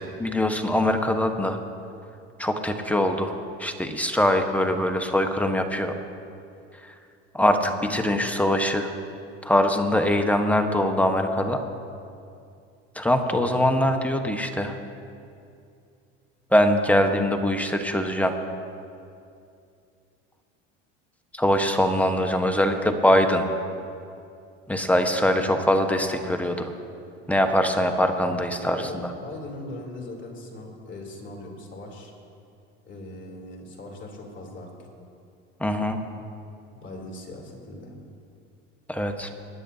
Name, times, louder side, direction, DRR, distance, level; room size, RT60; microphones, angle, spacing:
voice 1, 0.0-1.6 2.4-3.3 3.6-5.9 6.8-6.9 7.3-8.9 9.4-11.6 12.9-14.8 16.5-18.4 21.3-23.4 24.7-26.7 27.3-28.9 35.6-36.0 38.9-39.3, left 1 dB, 5° left, 5 dB, 1.2 m, -22 dB
voice 2, 25.4-25.8 28.6-32.1 32.8-34.9 36.7-38.0, left 1 dB, 35° left, -1 dB, 3.3 m, -40 dB
24.5 x 10.0 x 2.8 m, 2.5 s
hypercardioid pair, 85°, 34 cm